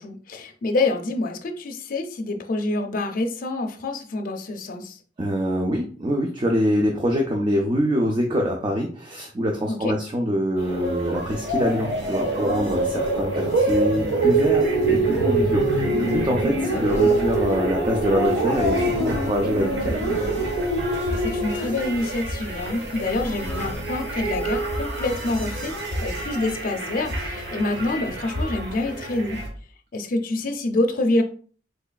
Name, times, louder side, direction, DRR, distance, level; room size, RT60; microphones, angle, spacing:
voice 1, 0.0-5.0 9.7-9.9 16.7-17.1 21.1-25.7 26.0-29.4 29.9-31.2, left 2 dB, 50° left, 4 dB, 0.5 m, -27 dB
voice 2, 5.2-20.2, equal, 25° right, 1 dB, 0.4 m, -24 dB
sound 1, 10.6-29.5, right 2 dB, 75° right, 1.1 m, -25 dB
3.7 x 3.2 x 2.2 m, 0.42 s
head